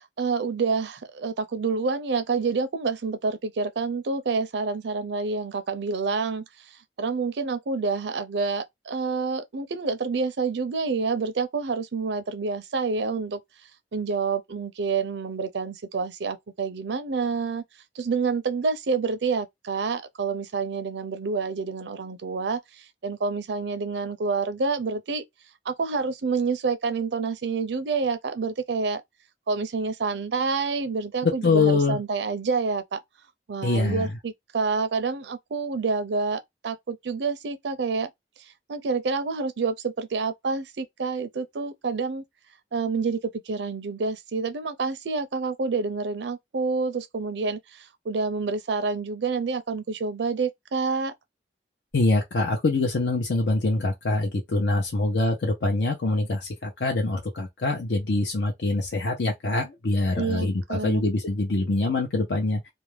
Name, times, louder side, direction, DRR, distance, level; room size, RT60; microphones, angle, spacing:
voice 1, 0.0-13.4 13.9-17.6 17.9-25.3 25.7-29.0 29.5-33.0 33.5-38.1 38.4-42.2 42.7-51.1 60.2-61.0, right 4 dB, 75° right, 0.5 m, -28 dB
voice 2, 31.2-32.0 33.6-34.1 51.9-62.7, left 2 dB, 80° left, 0.7 m, -24 dB
2.5 x 2.2 x 3.1 m
head